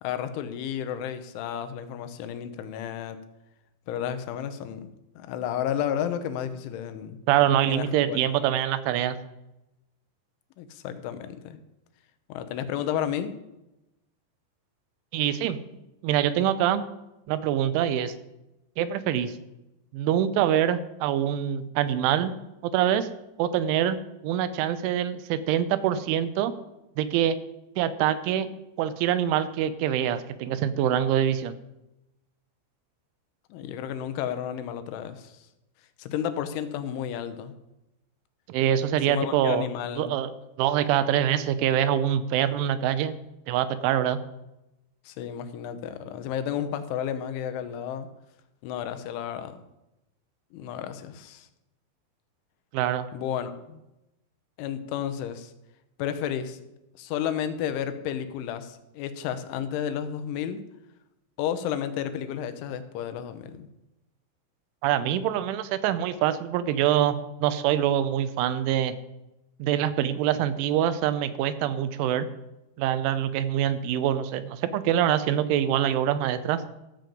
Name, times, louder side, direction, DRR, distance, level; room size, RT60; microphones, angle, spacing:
voice 1, 0.0-3.2 3.9-7.2 7.7-8.4 10.6-11.6 12.3-13.3 33.5-35.4 36.0-37.6 39.1-40.2 45.1-48.1 48.6-49.6 50.5-51.5 53.1-53.8 54.6-55.5 56.0-56.6 57.0-60.6 61.4-63.7, left 9 dB, 85° left, 9 dB, 3.3 m, -32 dB
voice 2, 7.3-9.2 15.1-15.6 16.0-16.8 17.3-18.1 18.8-19.4 19.9-22.3 22.6-23.1 23.4-24.0 24.2-26.5 27.0-27.4 27.8-28.5 28.8-31.5 38.5-39.7 40.0-40.3 40.6-43.2 43.5-44.2 52.7-53.1 64.8-68.9 69.6-72.3 72.8-76.6, right 10 dB, 90° right, 12 dB, 3.2 m, -25 dB
14.0 x 5.2 x 7.7 m, 0.93 s
omnidirectional pair, 5.4 m